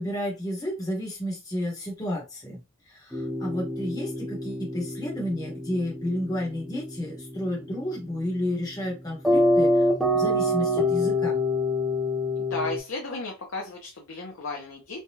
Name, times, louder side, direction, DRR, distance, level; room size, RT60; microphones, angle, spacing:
voice 1, 0.0-2.6 2.9-11.4, left 1 dB, 20° left, -2 dB, 1.0 m, -31 dB
sound 1, 3.1-12.8, left 1 dB, ahead, 0.6 m, -27 dB
voice 2, 12.4-15.0, left 2 dB, 75° left, -1 dB, 0.7 m, -34 dB
3.3 x 2.3 x 2.8 m, 0.28 s
head